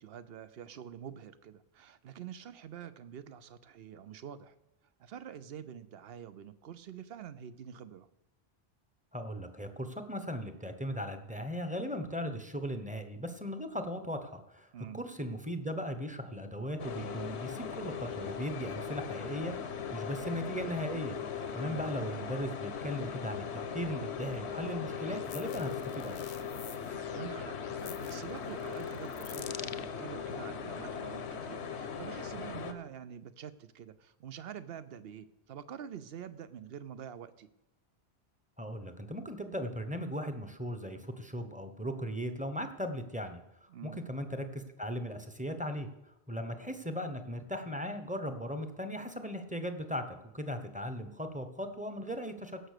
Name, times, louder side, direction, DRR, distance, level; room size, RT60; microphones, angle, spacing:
voice 1, 0.0-4.5 5.0-8.1 14.7-15.0 21.6-21.9 27.1-37.5 43.7-44.0, right 9 dB, 65° right, 14 dB, 0.9 m, -46 dB
voice 2, 9.1-14.7 14.9-21.2 21.5-26.2 38.6-45.9 46.3-52.6, equal, 10° right, 8 dB, 0.9 m, -38 dB
sound 1, 16.8-32.7, left 7 dB, 85° left, 1.2 m, -39 dB
sound 2, 24.9-29.9, left 8 dB, 55° left, 0.7 m, -48 dB
17.0 x 6.2 x 6.7 m, 0.87 s
omnidirectional pair, 1.1 m